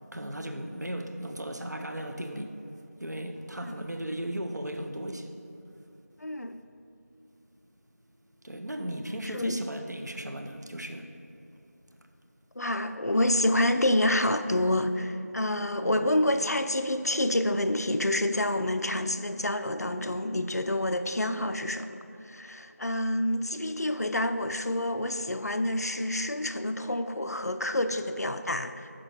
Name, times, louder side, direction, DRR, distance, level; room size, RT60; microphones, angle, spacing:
voice 1, 0.1-2.6 3.0-5.3 8.4-11.1 15.8-16.1, right 1 dB, 80° right, 0.7 m, -36 dB
voice 2, 6.2-6.6 9.3-9.6 12.6-22.0 22.2-28.9, left 1 dB, 65° left, 0.4 m, -28 dB
6.0 x 4.9 x 4.3 m
figure-of-eight pair, 180°, 9 cm